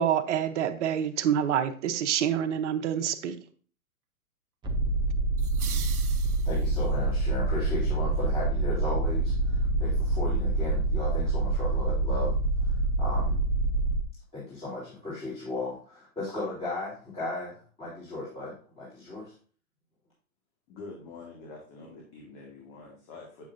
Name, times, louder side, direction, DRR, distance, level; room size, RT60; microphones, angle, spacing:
voice 1, 0.0-3.4, right 9 dB, 55° right, 0.9 m, -27 dB
sound 1, 4.6-14.0, right 2 dB, 10° right, 0.6 m, -26 dB
sound 2, 5.4-7.0, right 8 dB, 90° right, 1.3 m, -41 dB
voice 2, 6.4-12.3 12.6-13.4 14.3-19.3, left 2 dB, 15° left, 3.6 m, -36 dB
voice 3, 20.7-23.5, left 3 dB, 35° left, 1.9 m, -46 dB
8.3 x 7.1 x 2.6 m
hypercardioid pair, 135°, 43 cm